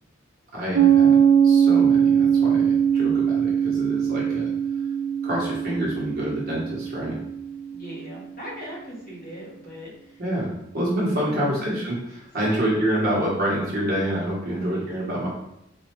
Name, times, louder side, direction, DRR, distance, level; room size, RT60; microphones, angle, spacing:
voice 1, 0.5-4.5 5.2-7.1 10.2-10.5 10.7-15.3, right 1 dB, 50° right, -6 dB, 0.9 m, -27 dB
Piano, 0.7-8.0, right 8 dB, 75° right, 0.5 m, -21 dB
voice 2, 7.7-10.2 11.0-11.6 12.4-12.9 14.5-15.0, equal, 45° left, -6 dB, 1.4 m, -40 dB
4.2 x 2.3 x 2.9 m, 0.81 s
head